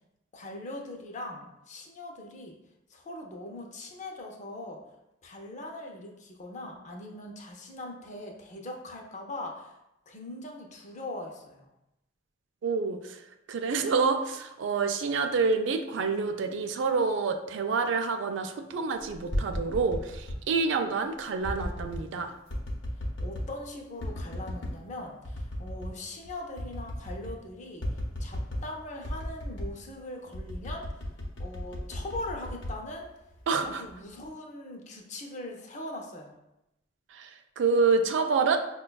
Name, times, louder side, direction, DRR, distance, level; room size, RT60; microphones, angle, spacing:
voice 1, 0.3-2.5 2.9-4.8 5.2-9.8 10.1-11.7 23.2-27.9 28.2-30.9 31.4-33.1 33.6-36.4, left 1 dB, 40° left, 1 dB, 0.5 m, -41 dB
voice 2, 12.6-13.2 13.5-22.3 33.5-33.8 37.1-37.3 37.6-38.6, right 4 dB, 70° right, 7 dB, 0.3 m, -27 dB
sound 1, 19.1-20.4 21.4-22.1 22.5-23.6 24.0-24.8 25.2-26.0 26.2-26.3 26.6-27.4 27.8-28.7 29.0-29.8 30.3-33.4 33.9-34.3, equal, 80° left, 0.7 m, -35 dB
5.1 x 2.2 x 2.2 m, 0.89 s
head